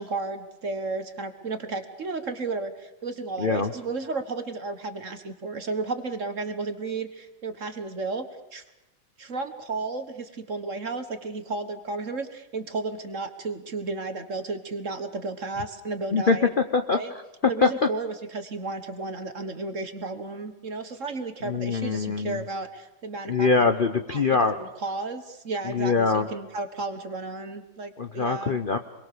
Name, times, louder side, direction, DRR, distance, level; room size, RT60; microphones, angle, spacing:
voice 1, 0.0-8.3 8.5-8.6 9.2-16.5 16.9-17.1 17.4-23.7 24.1-28.6, right 3 dB, 40° right, 8 dB, 1.6 m, -33 dB
voice 2, 3.4-3.7 16.1-17.0 17.6-17.9 21.4-22.4 23.2-24.6 25.6-26.3 28.0-28.8, left 4 dB, 45° left, 8 dB, 0.6 m, -23 dB
27.5 x 22.0 x 6.8 m, 0.94 s
omnidirectional pair, 2.3 m